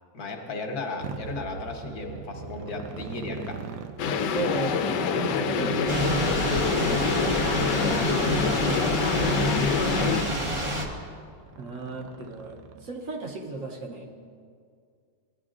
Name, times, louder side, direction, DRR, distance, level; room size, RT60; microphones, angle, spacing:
voice 1, 0.1-3.6 9.6-10.3, left 3 dB, 65° left, 2 dB, 1.5 m, -35 dB
Motorcycle, 1.0-13.1, right 6 dB, 80° right, 1.1 m, -43 dB
sound 1, 4.0-10.2, left 5 dB, 85° left, 1.2 m, -26 dB
voice 2, 4.2-9.1 11.6-14.1, right 3 dB, 60° right, 0 dB, 1.1 m, -35 dB
Thunder / Rain, 5.9-10.9, equal, 35° right, 0.5 m, -28 dB
15.5 x 9.6 x 2.5 m, 2.2 s
omnidirectional pair, 1.8 m